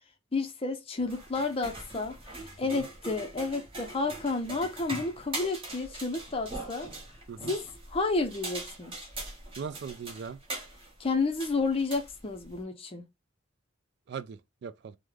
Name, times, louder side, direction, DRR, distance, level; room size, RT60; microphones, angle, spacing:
voice 1, 0.3-6.9 7.4-9.0 11.0-13.0, left 3 dB, 30° left, 0.5 m, -31 dB
sound 1, 1.0-12.6, right 2 dB, 25° right, 1.1 m, -42 dB
voice 2, 9.6-10.4 14.1-15.0, right 6 dB, 55° right, 0.3 m, -39 dB
3.5 x 2.1 x 3.1 m
head